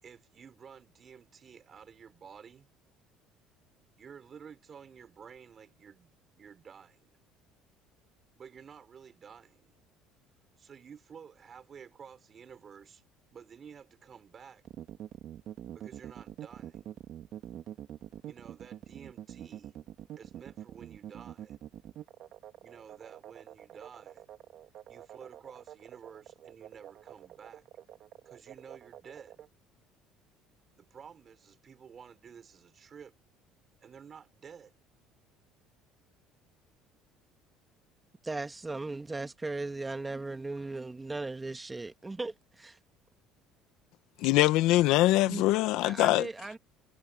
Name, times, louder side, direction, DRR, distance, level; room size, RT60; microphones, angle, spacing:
voice 1, 0.0-2.7 4.0-6.1 6.4-7.2 8.4-9.7 10.6-13.0 13.3-14.6 15.7-17.0 18.2-19.8 20.2-21.6 22.6-24.2 24.9-27.6 28.2-29.5 30.8-33.2 33.8-34.8, right 7 dB, 35° right, 5.7 m, -52 dB
sound 1, 14.6-29.5, right 11 dB, 55° right, 2.2 m, -46 dB
voice 2, 38.2-42.8 45.3-45.4 45.7-46.6, right 3 dB, 15° right, 1.8 m, -37 dB
voice 3, 44.2-46.3, left 17 dB, 75° left, 1.2 m, -23 dB
cardioid pair, 115°, 0 cm